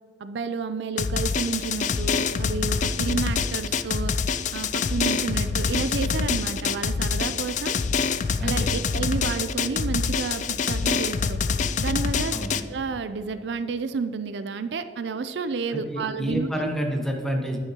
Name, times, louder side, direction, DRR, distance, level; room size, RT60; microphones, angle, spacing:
voice 1, 0.2-4.1 4.5-7.8 8.4-11.4 11.8-12.4 12.7-16.7, right 5 dB, 65° right, 11 dB, 0.4 m, -30 dB
Drum, 1.0-12.6, left 5 dB, 40° left, 0.3 m, -26 dB
voice 2, 8.4-8.7 12.3-12.5 15.7-17.6, equal, 5° left, 1 dB, 1.0 m, -29 dB
9.8 x 9.5 x 2.9 m, 2.1 s
head